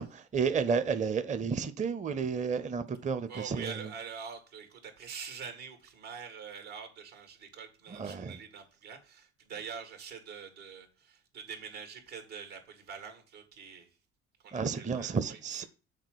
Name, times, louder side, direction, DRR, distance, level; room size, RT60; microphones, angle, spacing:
voice 1, 0.0-3.9 7.9-8.4 14.5-15.6, right 5 dB, 20° right, 0.6 m, -32 dB
voice 2, 3.3-13.9 14.4-15.7, right 6 dB, 80° right, 2.0 m, -45 dB
6.7 x 3.9 x 6.3 m
hypercardioid pair, 60°, 34 cm